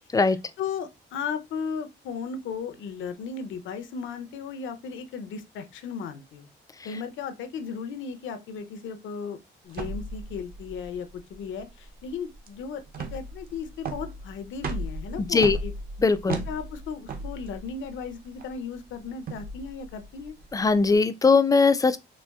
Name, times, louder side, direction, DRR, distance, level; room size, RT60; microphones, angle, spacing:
voice 1, 0.3-6.5 6.8-9.4 9.6-15.7 16.3-20.3, left 6 dB, 75° left, 0.6 m, -36 dB
sound 1, 9.7-20.9, right 2 dB, 50° right, 0.7 m, -37 dB
voice 2, 16.0-16.4 20.5-22.0, left 4 dB, 20° left, 0.3 m, -20 dB
4.2 x 2.5 x 2.3 m
cardioid pair, 90°, 20 cm